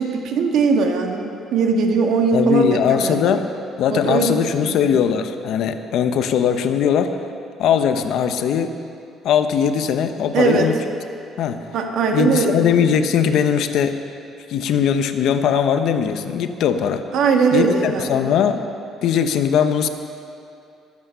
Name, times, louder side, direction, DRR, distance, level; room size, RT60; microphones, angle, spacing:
voice 1, 0.0-3.4 3.9-5.0 10.3-10.7 11.7-12.7 17.1-18.2, right 4 dB, 60° right, 3 dB, 1.7 m, -20 dB
voice 2, 2.3-3.5 3.8-7.2 7.6-8.8 9.2-10.8 11.4-11.6 12.1-14.0 14.5-17.0 17.5-18.6 19.0-19.9, left 8 dB, 60° left, 8 dB, 0.9 m, -20 dB
22.5 x 8.6 x 6.9 m, 2.6 s
cardioid pair, 175°, 0 cm